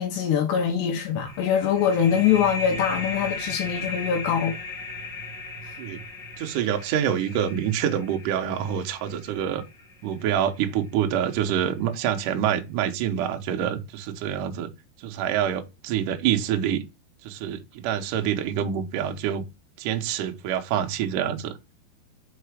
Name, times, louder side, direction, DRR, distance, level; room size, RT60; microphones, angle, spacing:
voice 1, 0.0-4.6, left 8 dB, 80° left, 3.2 m, -23 dB
sound 1, 1.3-10.6, left 2 dB, 30° left, 2.8 m, -37 dB
voice 2, 6.4-9.6 10.0-14.7 15.0-16.8 17.2-19.4 19.8-21.6, right 9 dB, 75° right, 2.0 m, -26 dB
5.8 x 5.4 x 4.9 m
omnidirectional pair, 4.9 m